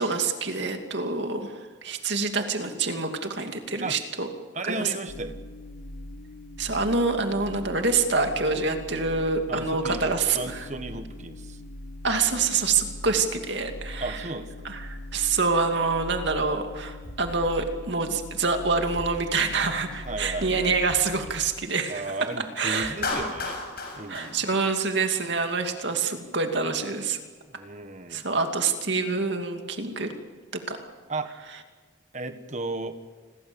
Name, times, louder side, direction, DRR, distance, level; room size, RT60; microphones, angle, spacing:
voice 1, 0.0-4.3 4.6-5.0 6.6-10.7 12.0-14.4 14.6-23.0 24.1-27.2 28.1-30.1 30.7-30.8 31.2-31.6, right 4 dB, 60° right, 5 dB, 2.5 m, -26 dB
voice 2, 4.5-5.4 9.5-11.6 14.0-14.7 20.1-20.8 21.9-23.6 23.9-24.5 27.5-28.3 31.1-31.3 32.1-33.0, right 2 dB, 35° right, 9 dB, 1.5 m, -34 dB
sound 1, 5.1-21.5, left 1 dB, 85° left, 1.4 m, -41 dB
Drum kit, 17.0-17.6 18.0-18.1 18.4-19.5 19.9-20.1 20.4-21.5 21.8-21.9 22.2-23.4 23.8-24.7, equal, 5° left, 4.2 m, -48 dB
Clapping, 23.0-25.3, left 3 dB, 50° left, 6.4 m, -33 dB
29.0 x 22.5 x 7.1 m, 1.5 s
head